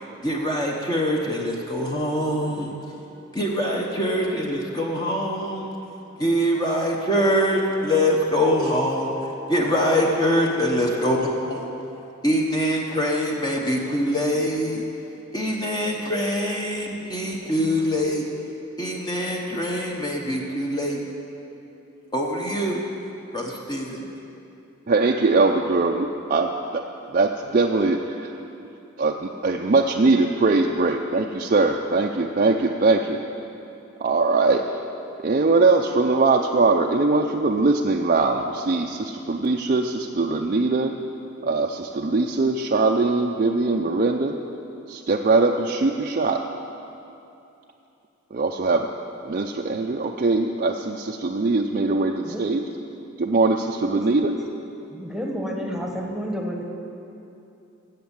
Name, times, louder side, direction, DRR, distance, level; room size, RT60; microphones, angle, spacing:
voice 1, 0.0-2.7 3.3-5.7 6.2-11.6 12.2-14.8 15.3-18.2 18.8-21.0 22.1-22.8 23.3-24.1, equal, 20° left, -1 dB, 1.0 m, -24 dB
voice 2, 24.9-26.8 27.1-28.7 29.0-33.2 34.0-34.8 35.2-41.0 41.4-44.4 44.9-46.4 48.3-48.9 49.2-52.6 53.2-54.4, right 3 dB, 40° right, 1 dB, 0.5 m, -21 dB
voice 3, 54.9-56.6, equal, ahead, 1 dB, 1.3 m, -30 dB
13.5 x 8.1 x 7.3 m, 2.8 s
head